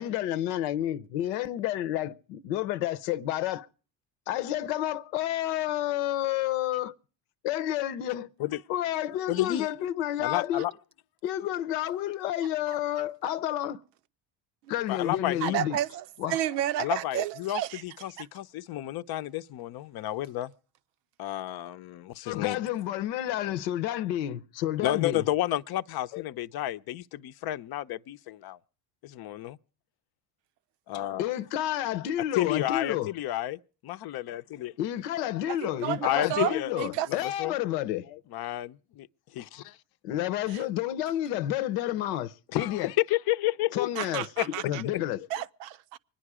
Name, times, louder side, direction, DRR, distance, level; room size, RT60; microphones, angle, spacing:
voice 1, 0.0-3.7 4.3-6.9 7.4-8.3 8.7-10.6 11.2-13.8 14.7-15.8 16.2-16.4 22.3-25.2 26.1-26.2 31.2-33.1 34.8-38.2 40.0-42.9 43.7-44.3 44.6-45.3, left 12 dB, 80° left, 0.9 m, -30 dB
voice 2, 9.3-9.7 10.2-10.7 14.9-15.6 16.8-20.5 21.2-22.6 24.8-28.6 29.0-29.6 30.9-31.3 32.3-34.7 36.0-36.7 37.1-37.5 38.3-39.1 39.3-39.8 42.5-43.9 44.4-44.5 44.8-44.9, left 14 dB, 50° left, 0.7 m, -31 dB
voice 3, 15.4-17.8 18.2-18.3 35.5-37.1 40.5-40.6 44.0-44.8 45.3-46.0, right 12 dB, 80° right, 0.7 m, -31 dB
24.0 x 10.0 x 4.8 m
hypercardioid pair, 80°, 49 cm